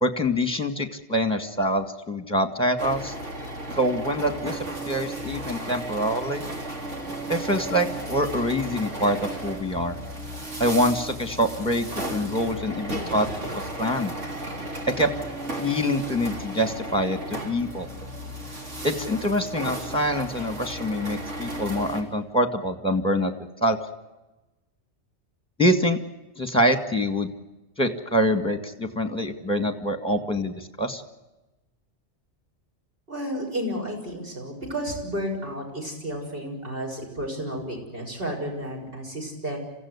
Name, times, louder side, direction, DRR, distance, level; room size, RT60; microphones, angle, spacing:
voice 1, 0.0-3.1 3.8-4.6 4.9-6.4 7.3-10.0 10.6-13.3 13.8-14.1 15.0-15.1 15.6-17.9 18.8-23.3 23.6-23.8 25.6-26.0 26.4-27.3 27.8-31.0, equal, 5° left, 7 dB, 1.9 m, -25 dB
sound 1, 2.8-22.0, right 1 dB, 90° right, 3.9 m, -34 dB
voice 2, 33.1-39.6, equal, 50° right, 0 dB, 7.1 m, -32 dB
27.5 x 16.0 x 9.7 m, 1.1 s
omnidirectional pair, 1.2 m